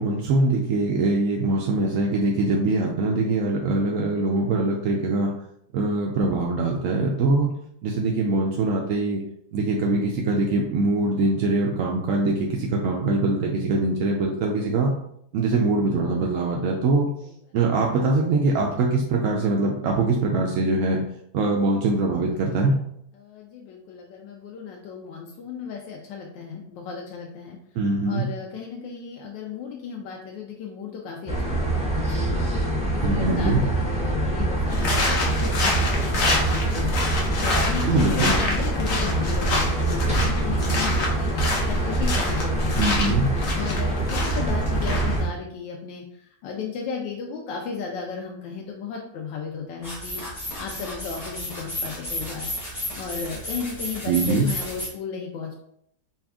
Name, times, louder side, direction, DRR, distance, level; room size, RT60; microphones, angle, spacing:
voice 1, 0.0-5.3 5.7-7.5 7.8-9.2 9.5-14.9 15.3-17.1 17.5-21.0 21.3-22.7 27.8-28.3 33.0-33.6 37.8-38.4 42.8-43.3 54.1-54.5, right 2 dB, 80° right, -1 dB, 0.7 m, -23 dB
voice 2, 23.2-27.6 28.1-32.4 32.8-36.9 37.3-42.8 43.5-50.2 50.6-52.5 52.9-55.6, left 6 dB, 90° left, 0 dB, 1.3 m, -35 dB
sound 1, 31.3-45.2, right 2 dB, 10° right, 0.3 m, -24 dB
sound 2, 34.7-45.3, left 2 dB, 55° left, 1.1 m, -28 dB
sound 3, 49.8-54.9, equal, 20° left, 1.1 m, -33 dB
4.2 x 2.3 x 3.5 m, 0.71 s
omnidirectional pair, 1.9 m